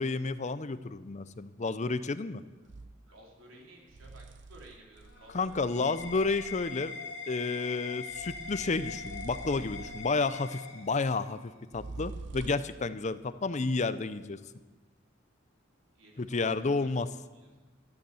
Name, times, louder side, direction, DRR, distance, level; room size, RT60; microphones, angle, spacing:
voice 1, 0.0-2.4 5.3-6.9 7.3-14.4 16.2-17.1, left 3 dB, 35° left, 14 dB, 0.6 m, -31 dB
sound 1, 2.7-3.0 3.9-6.9 8.1-10.3 11.7-12.8, right 3 dB, 60° right, 0.6 m, -46 dB
voice 2, 3.0-6.0 15.9-17.6, right 1 dB, 85° right, -1 dB, 4.1 m, -56 dB
sound 2, 5.0-11.4, left 5 dB, 85° left, 2.4 m, -42 dB
13.0 x 12.0 x 7.1 m, 1.2 s
head